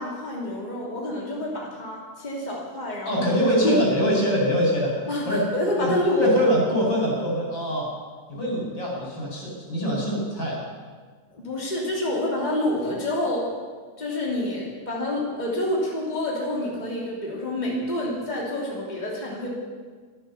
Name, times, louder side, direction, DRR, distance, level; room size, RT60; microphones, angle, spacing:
voice 1, 0.0-3.2 3.6-3.9 5.1-6.4 11.3-13.5 14.0-19.5, left 1 dB, 20° left, -4 dB, 2.9 m, -27 dB
voice 2, 3.0-5.0 5.3-5.4 5.8-5.9 6.1-7.9 8.3-10.6, equal, 75° left, -4 dB, 5.9 m, -23 dB
14.5 x 12.5 x 6.8 m, 1.5 s
omnidirectional pair, 2.0 m